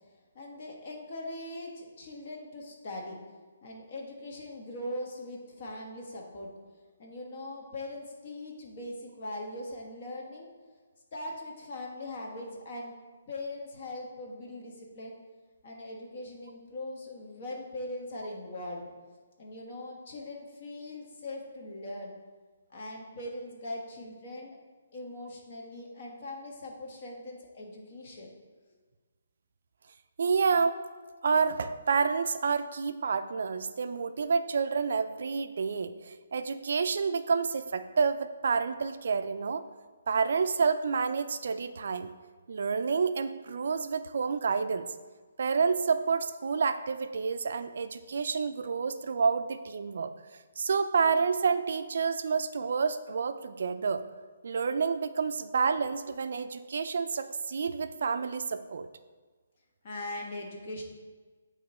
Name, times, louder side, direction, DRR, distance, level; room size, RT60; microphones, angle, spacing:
voice 1, 0.3-3.2 3.6-6.5 7.0-10.5 11.1-12.9 13.3-15.1 15.6-18.9 19.4-22.1 22.7-24.6 24.9-28.3 59.8-60.8, left 1 dB, 45° left, 0 dB, 1.3 m, -40 dB
voice 2, 30.2-30.8 31.2-39.6 40.1-42.1 42.5-44.9 45.4-50.1 50.6-54.0 54.4-58.9, right 5 dB, 60° right, 10 dB, 0.4 m, -29 dB
8.7 x 3.1 x 4.3 m, 1.4 s
hypercardioid pair, 165°, 0 cm